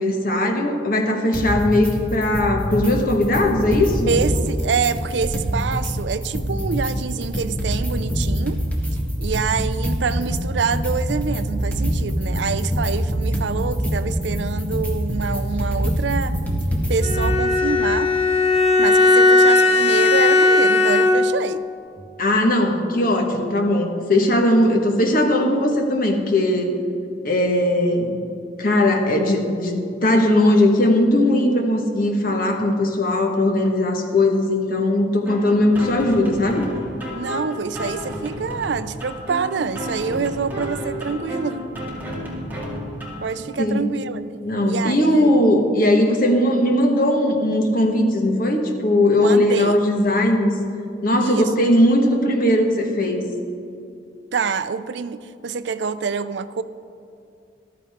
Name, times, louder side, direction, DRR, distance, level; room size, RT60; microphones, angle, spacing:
voice 1, 0.0-4.1 22.2-26.7 27.2-28.2 28.6-36.7 43.6-43.8 44.4-50.5 51.0-53.2, left 1 dB, 50° left, 3 dB, 1.4 m, -19 dB
sound 1, 1.3-1.9 2.2-2.9 3.2-5.9 6.2-17.3, equal, 10° left, 1.6 m, -24 dB
voice 2, 4.1-8.6 9.2-16.3 16.9-18.1 18.8-21.7 37.2-41.6 43.2-44.2 44.7-45.4 49.2-49.8 51.2-51.5 54.3-56.6, right 5 dB, 70° right, 13 dB, 0.5 m, -26 dB
Bowed string instrument, 17.0-21.5, left 2 dB, 35° left, 0.9 m, -16 dB
sound 2, 35.3-43.3, equal, 10° right, 2.1 m, -32 dB
14.0 x 12.5 x 3.6 m, 2.5 s
head